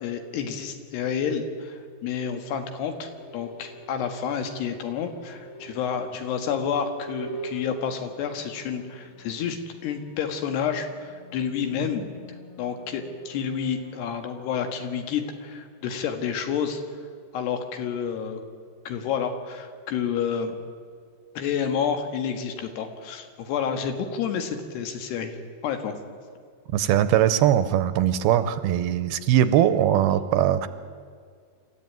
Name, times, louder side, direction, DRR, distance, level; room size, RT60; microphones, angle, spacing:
voice 1, 0.0-12.1 12.6-16.8 17.3-18.4 18.9-20.6 21.4-25.3 25.6-26.0, left 7 dB, 80° left, 6 dB, 3.7 m, -29 dB
sound 1, 1.6-16.3, right 2 dB, 40° left, 1.2 m, -46 dB
voice 2, 26.7-30.7, right 11 dB, 80° right, 12 dB, 2.5 m, -21 dB
26.5 x 14.0 x 9.3 m, 2.1 s
omnidirectional pair, 4.7 m